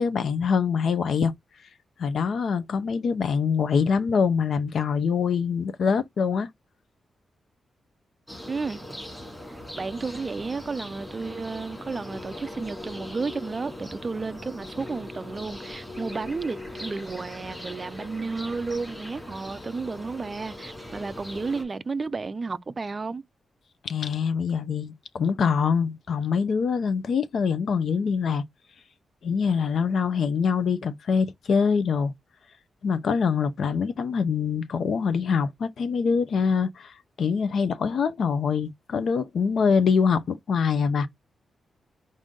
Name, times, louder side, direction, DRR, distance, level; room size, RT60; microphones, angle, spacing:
voice 1, 0.0-1.3 2.0-6.5 23.8-28.4 29.2-32.1 32.8-36.9 37.2-41.1, left 6 dB, 60° left, 0.7 m, -24 dB
sound 1, 8.3-21.6, left 1 dB, 10° left, 2.4 m, -40 dB
voice 2, 8.5-9.0 9.8-23.2, right 4 dB, 30° right, 0.4 m, -32 dB
5.0 x 2.6 x 3.8 m
wide cardioid pair, 155°, 0 cm